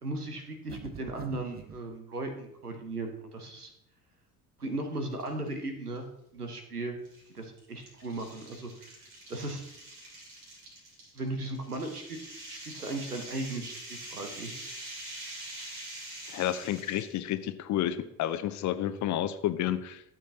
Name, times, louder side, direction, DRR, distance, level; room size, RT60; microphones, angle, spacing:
voice 1, 0.0-3.7 4.6-6.1 6.3-7.0 7.3-9.6 11.1-12.2 12.5-14.5, right 2 dB, 90° right, 5 dB, 1.0 m, -37 dB
sound 1, 0.7-1.8, right 7 dB, 20° right, 0.7 m, -44 dB
sound 2, 5.1-5.5 5.9-6.0 7.0-17.2, right 1 dB, 65° right, 2.9 m, -45 dB
voice 2, 16.3-20.0, left 12 dB, 40° left, 12 dB, 0.7 m, -30 dB
12.5 x 7.3 x 2.8 m, 0.79 s
figure-of-eight pair, 55°, 44 cm